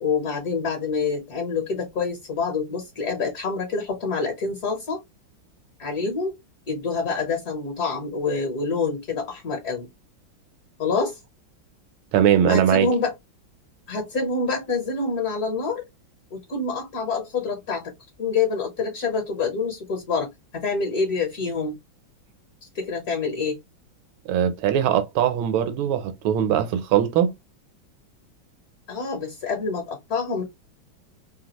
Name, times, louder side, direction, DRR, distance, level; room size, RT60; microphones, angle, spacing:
voice 1, 0.0-5.0 5.8-6.3 6.7-9.9 10.8-11.2 12.5-13.1 13.9-15.8 16.3-17.9 18.2-21.8 22.6-23.6 28.9-30.4, left 4 dB, 60° left, 1.1 m, -26 dB
voice 2, 12.1-12.9 24.3-27.3, right 9 dB, 85° right, 1.4 m, -21 dB
3.4 x 2.3 x 2.8 m
omnidirectional pair, 2.2 m